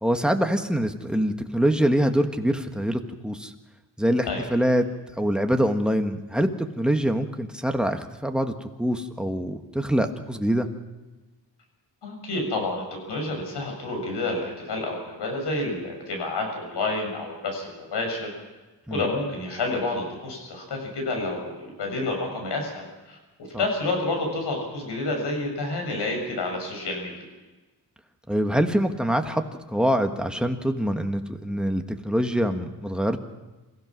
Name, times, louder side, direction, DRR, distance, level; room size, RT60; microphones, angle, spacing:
voice 1, 0.0-3.5 4.0-4.8 5.2-10.7 18.9-19.0 23.5-23.6 28.3-29.4 29.7-33.2, equal, ahead, 5 dB, 1.4 m, -24 dB
voice 2, 12.0-18.3 18.9-23.2 23.6-27.1, left 2 dB, 85° left, 2 dB, 7.2 m, -29 dB
27.5 x 16.0 x 6.2 m, 1.2 s
wide cardioid pair, 145°, 40 cm